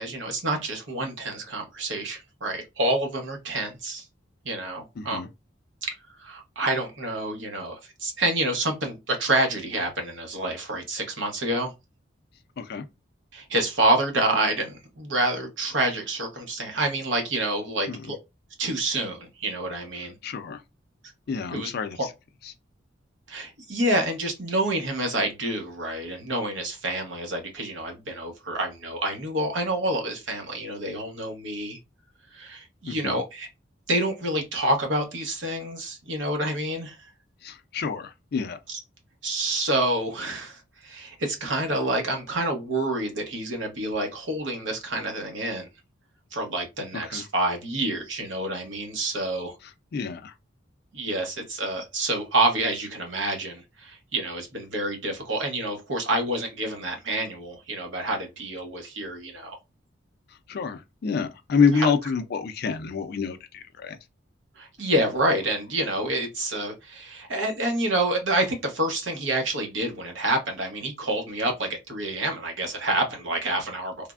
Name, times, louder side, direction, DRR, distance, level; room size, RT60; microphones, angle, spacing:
voice 1, 0.0-4.1 4.4-5.2 5.8-5.9 6.2-11.7 13.3-18.2 18.6-20.1 21.5-22.1 23.3-31.8 32.3-33.5 33.9-37.1 38.7-38.8 39.2-45.7 46.3-49.6 50.9-59.6 61.7-61.9 64.6-74.1, right 1 dB, 70° right, 0.9 m, -28 dB
voice 2, 5.0-5.3 12.6-12.8 17.9-18.0 20.2-20.6 21.3-22.0 32.9-33.2 37.4-38.6 47.1-47.2 49.9-50.3 60.5-64.0, left 5 dB, 55° left, 0.4 m, -27 dB
3.3 x 2.1 x 2.4 m
head